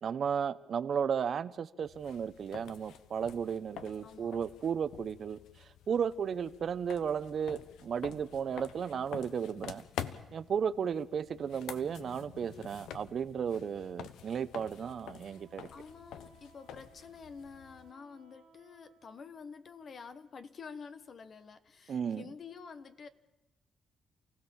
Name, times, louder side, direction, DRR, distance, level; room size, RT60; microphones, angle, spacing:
voice 1, 0.0-9.8 10.3-15.7 21.9-22.2, right 7 dB, 60° right, 0.9 m, -34 dB
sound 1, 1.8-17.9, left 9 dB, 85° left, 1.0 m, -48 dB
voice 2, 4.0-4.3 15.7-23.1, left 5 dB, 50° left, 1.4 m, -49 dB
Wind instrument woodwind instrument, 15.2-19.4, right 5 dB, 75° right, 2.1 m, -63 dB
28.5 x 16.5 x 7.3 m
cardioid pair, 75°, 0 cm